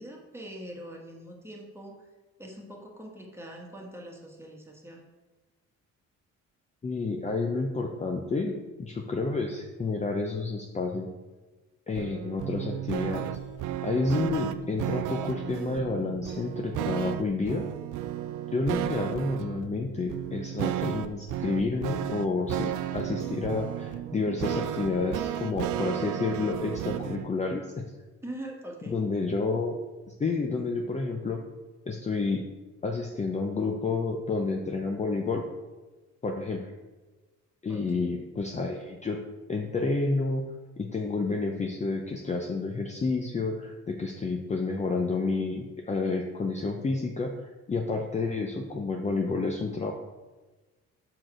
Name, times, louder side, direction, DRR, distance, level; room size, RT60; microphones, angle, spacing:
voice 1, 0.0-2.0 2.4-5.0 28.2-29.0 37.7-37.9, right 1 dB, 10° right, 0 dB, 1.4 m, -42 dB
voice 2, 6.8-11.1 11.9-13.3 13.8-17.6 18.5-27.6 28.9-29.7 30.2-31.4 31.9-32.4 32.8-35.4 36.2-36.6 37.6-39.2 39.5-40.4 40.8-47.3 47.7-49.9, left 3 dB, 25° left, 2 dB, 0.6 m, -30 dB
sound 1, 12.0-27.3, right 12 dB, 90° right, 0.5 m, -33 dB
6.1 x 4.5 x 4.9 m, 1.2 s
cardioid pair, 90°, 30 cm